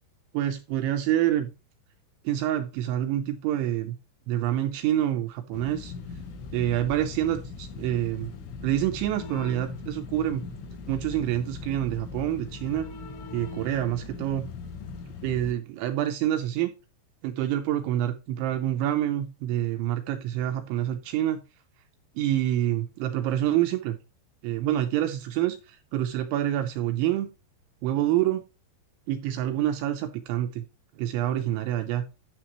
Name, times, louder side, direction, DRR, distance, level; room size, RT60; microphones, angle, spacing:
voice 1, 0.3-1.5 2.2-4.0 4.3-5.9 6.5-8.3 8.6-10.4 10.9-12.9 13.3-14.5 15.2-16.7 17.2-21.4 22.2-24.0 24.4-27.3 27.8-28.4 29.1-30.6 31.0-32.0, right 12 dB, 90° right, 7 dB, 2.7 m, -27 dB
sound 1, 5.5-15.5, left 4 dB, 70° left, 3.1 m, -39 dB
11.0 x 6.6 x 3.0 m, 0.29 s
omnidirectional pair, 6.0 m